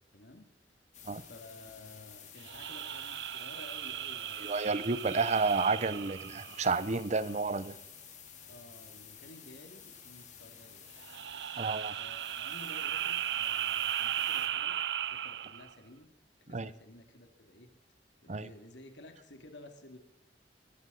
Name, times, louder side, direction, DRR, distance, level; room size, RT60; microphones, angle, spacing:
voice 1, 0.1-0.5 1.3-4.4 5.9-6.2 8.5-10.9 12.0-14.8 15.1-16.1 16.4-17.7 18.2-20.0, left 1 dB, 85° left, 5 dB, 2.5 m, -53 dB
sound 1, 0.9-14.5, left 7 dB, 45° left, 3.2 m, -52 dB
sound 2, 2.4-7.2 11.0-15.7, right 11 dB, 70° right, 0.5 m, -36 dB
voice 2, 4.4-7.8 11.6-11.9 16.5-16.7 18.3-18.5, right 4 dB, 40° right, 16 dB, 0.8 m, -31 dB
22.5 x 14.0 x 4.0 m, 0.84 s
head